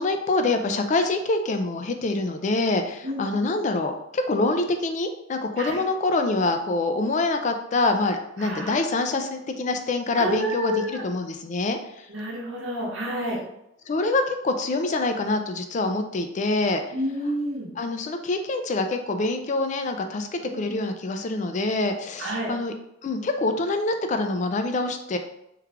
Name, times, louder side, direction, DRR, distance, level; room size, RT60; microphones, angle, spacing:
voice 1, 0.0-12.1 13.9-16.8 17.8-22.7 23.0-25.2, left 2 dB, 40° left, 6 dB, 0.3 m, -25 dB
voice 2, 8.4-8.8 10.2-11.0 12.1-13.4 16.9-17.7 20.5-20.7 22.2-22.5, right 1 dB, 75° right, -3 dB, 1.0 m, -29 dB
3.2 x 2.4 x 3.3 m, 0.81 s
head